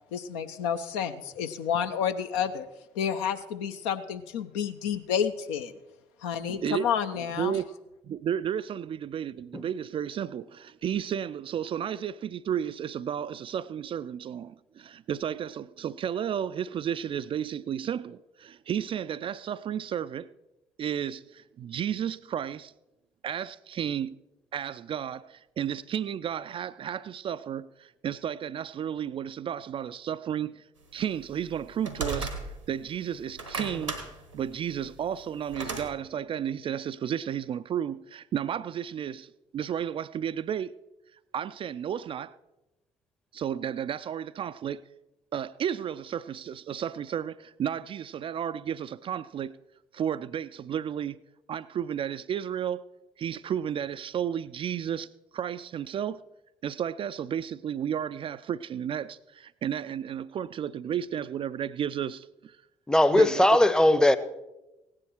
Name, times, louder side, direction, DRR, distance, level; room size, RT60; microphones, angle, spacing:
voice 1, 0.1-2.7 3.0-5.7 6.2-7.6, left 8 dB, 65° left, 0.7 m, -30 dB
voice 2, 6.5-6.9 7.4-7.7 8.0-20.3 20.8-22.7 23.2-24.2 24.5-30.6 30.9-32.3 32.7-34.0 34.3-40.7 41.3-42.4 43.3-44.8 45.3-49.6 49.9-51.2 51.5-52.9 53.2-56.2 56.6-62.6 63.1-63.6, right 9 dB, 35° right, 0.4 m, -33 dB
sound 1, 31.1-32.8 33.2-35.9, right 4 dB, 90° right, 1.2 m, -35 dB
voice 3, 62.9-64.2, left 1 dB, 5° left, 0.7 m, -19 dB
16.5 x 9.9 x 4.4 m
figure-of-eight pair, 45°, 15 cm